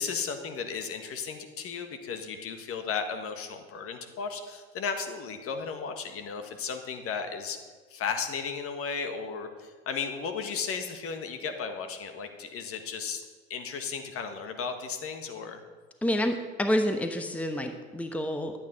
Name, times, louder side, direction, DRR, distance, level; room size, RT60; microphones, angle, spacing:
voice 1, 0.0-7.6 7.9-13.2 13.5-15.6, left 6 dB, 45° left, 7 dB, 1.6 m, -35 dB
voice 2, 16.0-18.5, equal, 5° left, 6 dB, 1.0 m, -28 dB
12.0 x 8.7 x 5.2 m, 1.5 s
hypercardioid pair, 80°, 31 cm